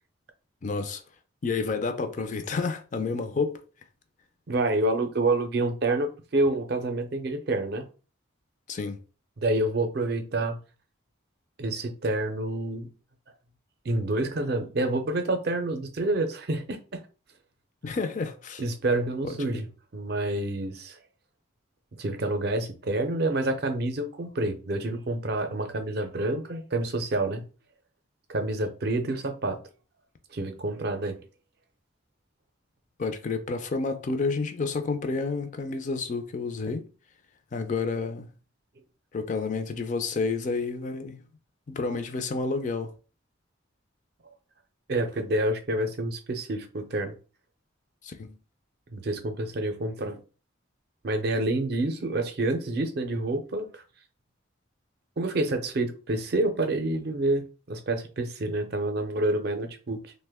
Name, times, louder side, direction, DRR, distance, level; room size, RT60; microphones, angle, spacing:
voice 1, 0.6-1.0 1.4-3.6 8.7-9.0 17.8-18.6 19.2-19.6 33.0-36.9 37.5-38.3 39.1-41.2 41.7-42.9 48.0-48.4, left 4 dB, 40° left, 0.4 m, -30 dB
voice 2, 4.5-7.9 9.4-10.6 11.6-12.9 13.8-17.0 18.6-19.7 19.9-21.0 21.9-27.5 28.3-29.6 30.3-31.2 44.9-47.2 48.9-50.2 51.0-53.8 55.2-60.1, right 2 dB, 50° right, 0.5 m, -28 dB
2.9 x 2.1 x 3.4 m
head